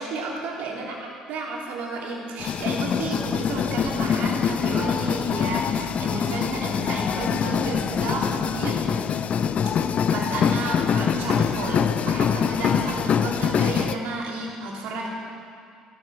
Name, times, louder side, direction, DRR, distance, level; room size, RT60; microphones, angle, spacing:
voice 1, 0.0-8.9 10.1-15.1, right 2 dB, 65° right, -2 dB, 3.5 m, -32 dB
sound 1, 2.4-13.9, left 7 dB, 45° left, 0.7 m, -24 dB
17.0 x 12.5 x 6.4 m, 2.3 s
hypercardioid pair, 55°, 3 cm